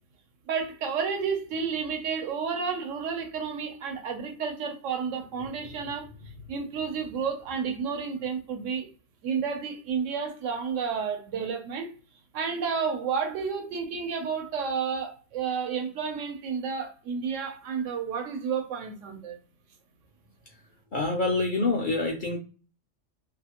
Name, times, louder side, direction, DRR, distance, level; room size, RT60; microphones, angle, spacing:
voice 1, 0.4-8.9 9.2-11.9 12.3-19.4, right 6 dB, 75° right, 1.0 m, -31 dB
voice 2, 20.9-22.4, left 3 dB, 60° left, 0.5 m, -26 dB
2.6 x 2.4 x 2.9 m
omnidirectional pair, 1.3 m